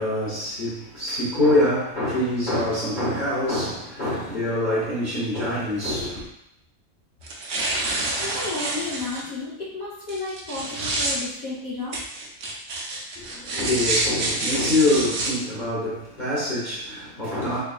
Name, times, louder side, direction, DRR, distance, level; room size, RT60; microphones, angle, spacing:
voice 1, 0.0-6.3 13.2-17.6, left 1 dB, 40° left, 0.9 m, -25 dB
sound 1, 7.2-9.2 10.1-11.2 11.9-15.3, right 2 dB, 60° right, 0.9 m, -27 dB
voice 2, 7.8-12.0, left 3 dB, 75° left, 1.4 m, -33 dB
3.8 x 3.5 x 2.3 m
omnidirectional pair, 1.5 m